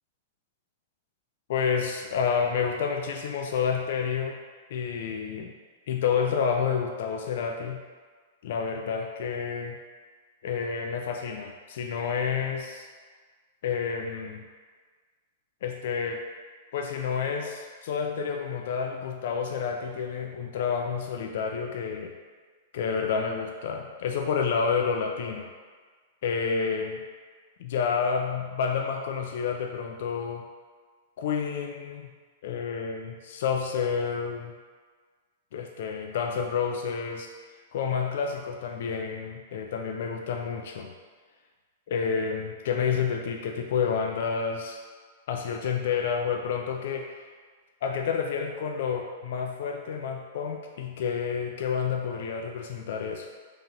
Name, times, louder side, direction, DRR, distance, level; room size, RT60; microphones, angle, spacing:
voice 1, 1.5-4.4 4.7-5.5 5.9-7.8 8.4-9.8 10.4-12.9 13.6-14.4 15.6-16.2 16.7-22.1 22.7-25.5 26.2-27.0 27.6-30.4 31.2-32.1 32.4-34.5 35.5-37.3 37.7-40.9 41.9-44.8 45.3-47.1 47.8-53.3, left 6 dB, 65° left, 2 dB, 0.3 m, -29 dB
2.9 x 2.9 x 3.7 m, 1.5 s
hypercardioid pair, 135°, 0 cm